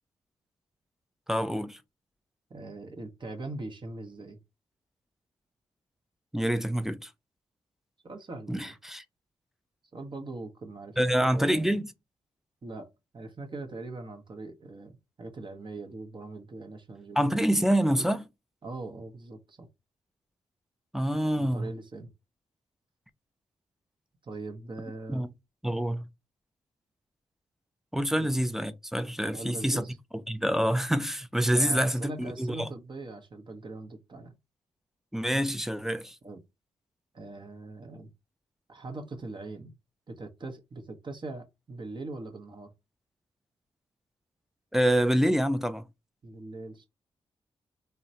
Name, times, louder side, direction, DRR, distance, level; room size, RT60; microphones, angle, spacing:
voice 1, 1.3-1.8 6.3-7.1 8.5-9.0 11.0-11.9 17.2-18.3 20.9-21.7 25.1-25.3 25.6-26.0 27.9-29.8 30.3-32.7 35.1-36.2 44.7-45.8, equal, 5° right, 0.4 m, -26 dB
voice 2, 2.5-4.4 8.0-8.7 9.9-11.7 12.6-12.9 13.1-17.3 18.6-19.7 21.4-22.1 24.2-25.3 28.2-28.3 29.2-29.9 31.5-34.3 36.2-36.4 37.1-38.1 38.7-39.7 40.1-42.7 46.2-46.9, right 2 dB, 45° right, 0.7 m, -41 dB
3.0 x 2.1 x 2.6 m
supercardioid pair, 50°, 12 cm